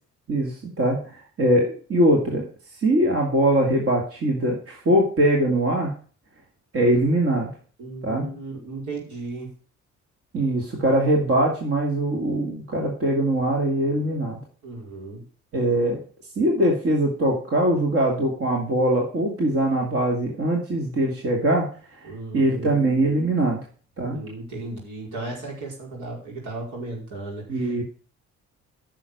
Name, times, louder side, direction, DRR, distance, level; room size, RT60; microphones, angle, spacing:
voice 1, 0.3-2.4 2.8-5.9 6.7-7.5 8.0-8.3 10.3-14.4 15.5-16.0 16.4-21.7 22.0-23.6 24.0-24.2 27.5-27.8, right 1 dB, 50° right, 0 dB, 2.5 m, -22 dB
voice 2, 7.8-9.5 14.6-15.3 22.0-22.7 24.1-27.8, right 2 dB, 75° right, -1 dB, 5.1 m, -35 dB
9.9 x 6.5 x 6.6 m, 0.42 s
cardioid pair, 90°, 30 cm